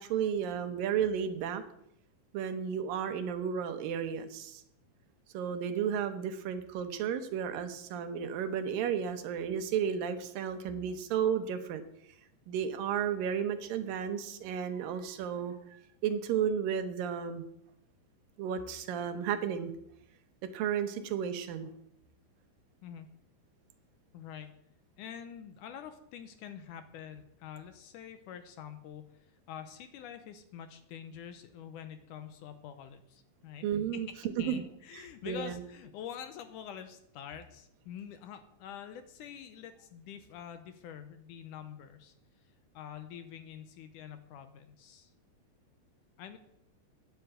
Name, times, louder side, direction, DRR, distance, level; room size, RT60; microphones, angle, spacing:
voice 1, 0.0-1.6 2.3-4.6 5.3-11.8 12.5-17.5 18.4-19.7 20.5-21.7 33.6-34.1 34.5-34.6 34.9-35.6, right 8 dB, 80° right, 9 dB, 2.6 m, -33 dB
voice 2, 24.1-24.6 25.0-34.0 34.4-42.1 42.7-45.1 46.2-46.4, left 8 dB, 75° left, 9 dB, 2.1 m, -46 dB
9.8 x 8.2 x 7.8 m, 0.76 s
omnidirectional pair, 4.1 m